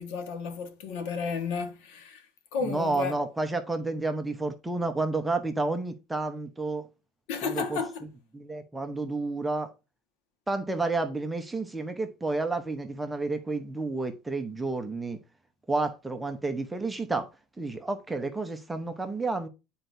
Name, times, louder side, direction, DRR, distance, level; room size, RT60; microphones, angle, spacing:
voice 1, 0.0-2.3 2.5-3.2 7.3-8.1, left 5 dB, 70° left, 1.4 m, -32 dB
voice 2, 2.6-6.9 7.4-7.8 8.3-9.7 10.5-15.2 15.7-17.3 17.6-19.5, right 3 dB, 5° right, 0.7 m, -30 dB
9.6 x 4.5 x 2.6 m
cardioid pair, 160°, 0 cm